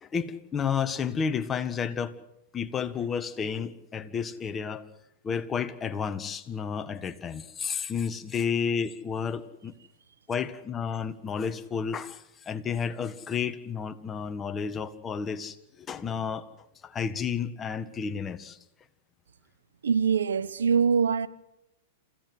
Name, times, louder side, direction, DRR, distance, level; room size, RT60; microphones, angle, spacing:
voice 1, 0.0-2.2 2.5-4.9 5.2-9.7 10.3-15.6 15.9-16.4 16.8-18.6, left 6 dB, 20° left, 1.6 m, -31 dB
voice 2, 19.8-21.3, right 6 dB, 85° right, 1.0 m, -23 dB
27.5 x 16.0 x 7.9 m
hypercardioid pair, 120°, 0 cm